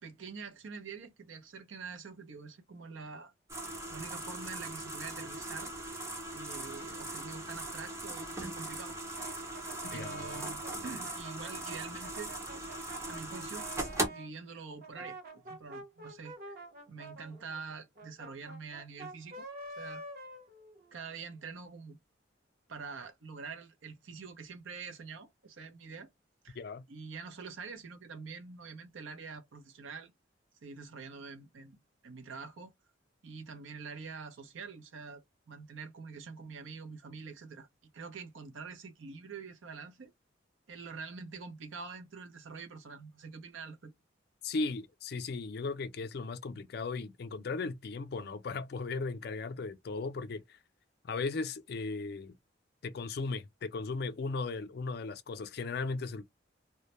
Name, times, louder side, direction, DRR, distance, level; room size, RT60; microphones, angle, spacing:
voice 1, 0.0-3.3 3.9-5.7 6.3-9.0 9.9-12.3 13.1-13.7 14.1-15.2 15.5-16.6 16.9-19.5 19.8-20.0 20.9-22.0 22.7-26.1 26.4-26.6 26.9-30.1 30.6-31.8 32.0-32.7 33.2-37.7 37.9-40.1 40.7-43.9, right 5 dB, 80° right, 0.6 m, -45 dB
sound 1, 3.5-14.1, right 1 dB, 15° right, 0.5 m, -39 dB
Brass instrument, 9.1-14.3 14.8-21.1, right 2 dB, 50° right, 0.7 m, -48 dB
voice 2, 9.9-10.3 26.6-26.8 44.4-50.6 51.0-52.3 52.8-56.2, left 3 dB, 55° left, 0.4 m, -37 dB
2.2 x 2.0 x 2.9 m
head